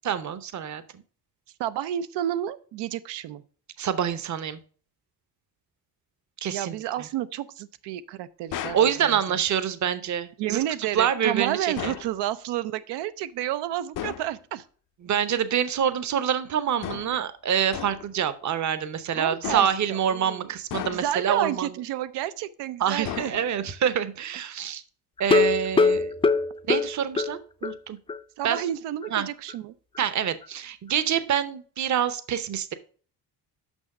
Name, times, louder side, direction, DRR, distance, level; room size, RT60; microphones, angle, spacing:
voice 1, 0.0-1.0 3.8-4.6 6.4-7.1 8.7-10.6 10.9-11.9 15.0-21.7 22.8-24.8 25.2-26.2 26.7-28.0 28.4-28.6 29.1-29.3 30.0-32.7, right 9 dB, 45° right, 14 dB, 0.8 m, -26 dB
voice 2, 1.6-3.4 6.5-9.4 10.4-14.6 19.1-20.5 20.9-23.3 28.4-29.7, right 12 dB, 85° right, 14 dB, 0.7 m, -31 dB
sound 1, 8.5-8.9 11.8-12.2 13.9-14.3 16.8-17.2 17.7-18.1 19.4-19.9 20.7-21.3 23.0-23.7, left 11 dB, 55° left, 0.6 m, -35 dB
sound 2, 25.2-27.8 28.1-28.2 28.6-28.7 29.0-29.1, left 4 dB, 15° left, 0.4 m, -22 dB
6.3 x 5.7 x 5.3 m, 0.42 s
cardioid pair, 95°, 40 cm